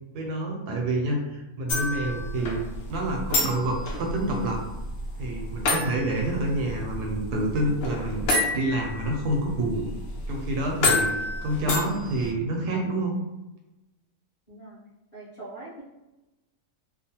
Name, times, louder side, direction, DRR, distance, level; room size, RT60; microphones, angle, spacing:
voice 1, 0.1-2.6 2.9-4.6 5.2-8.2 8.5-9.9 10.3-11.1 11.4-13.2, right 1 dB, 80° right, 0 dB, 1.1 m, -28 dB
sound 1, 1.7-12.3, left 2 dB, 70° left, 0.6 m, -30 dB
voice 2, 14.5-14.8 15.1-15.8, right 2 dB, 30° left, -11 dB, 1.0 m, -42 dB
3.0 x 2.0 x 2.8 m, 1.0 s
omnidirectional pair, 1.7 m